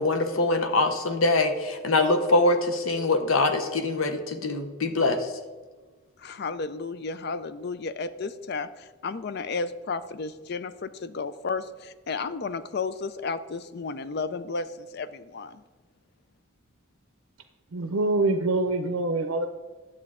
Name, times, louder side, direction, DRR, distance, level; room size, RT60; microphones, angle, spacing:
voice 1, 0.0-5.3, left 2 dB, 70° left, 7 dB, 0.8 m, -23 dB
voice 2, 6.2-8.7 9.0-15.6, left 4 dB, 50° left, 13 dB, 0.4 m, -33 dB
voice 3, 17.7-19.5, right 2 dB, 70° right, 8 dB, 0.6 m, -25 dB
10.5 x 7.9 x 3.6 m, 1.3 s
head